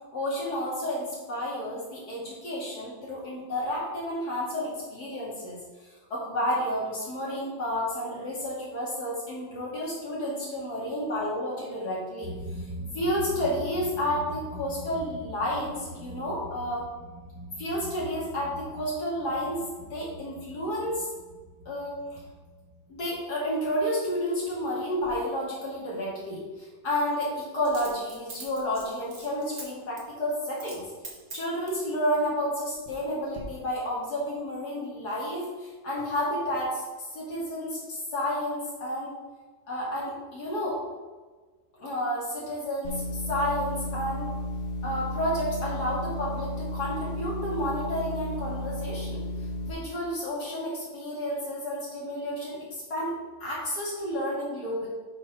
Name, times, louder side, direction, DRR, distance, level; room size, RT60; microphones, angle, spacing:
voice 1, 0.1-5.6 6.1-12.3 12.9-16.9 17.6-19.6 19.9-21.1 21.7-22.2 22.9-30.8 31.3-36.8 37.1-39.1 39.7-40.8 41.8-44.3 44.8-49.2 49.6-54.9, equal, 60° left, -6 dB, 2.8 m, -31 dB
sound 1, 12.2-23.2, equal, 30° right, 0.4 m, -42 dB
Coin (dropping), 25.0-25.1 27.6-29.6 30.0-30.1 30.6-30.8 31.0-31.8 32.5-33.0 33.3-33.4, right 3 dB, 55° right, 2.1 m, -43 dB
sound 2, 42.8-49.7, left 1 dB, 40° left, 1.1 m, -33 dB
7.8 x 4.6 x 5.6 m, 1.3 s
omnidirectional pair, 1.9 m